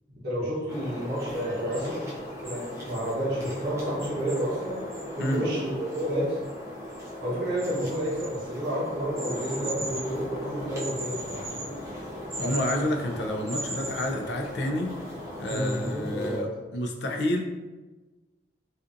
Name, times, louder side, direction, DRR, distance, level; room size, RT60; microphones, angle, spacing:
voice 1, 0.2-2.1 2.4-4.8 5.2-6.4 7.2-11.4 15.5-16.4, equal, 65° right, -8 dB, 0.8 m, -30 dB
sound 1, 0.7-16.4, equal, 15° right, 0.4 m, -37 dB
voice 2, 12.4-14.9 15.4-17.4, left 1 dB, 70° left, 3 dB, 0.4 m, -29 dB
2.5 x 2.4 x 2.4 m, 1.2 s
head